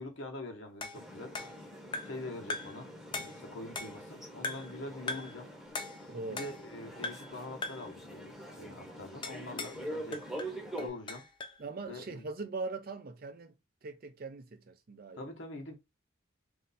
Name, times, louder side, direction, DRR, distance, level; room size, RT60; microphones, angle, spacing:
voice 1, 0.0-1.3 2.0-5.5 6.3-10.2 10.8-11.2 11.9-12.3 15.1-15.8, left 2 dB, 60° left, 1.1 m, -44 dB
sound 1, 0.8-2.2 2.5-2.8 3.1-4.1 4.4-4.8 5.1-5.4 5.7-6.7 7.0-7.4 7.6-7.9 9.2-9.8 10.1-11.6, left 3 dB, 25° left, 0.4 m, -40 dB
sound 2, 0.9-10.9, right 1 dB, ahead, 0.9 m, -45 dB
voice 2, 6.1-6.5 11.6-13.5 13.8-15.3, right 3 dB, 45° right, 0.5 m, -41 dB
3.2 x 2.7 x 4.1 m
head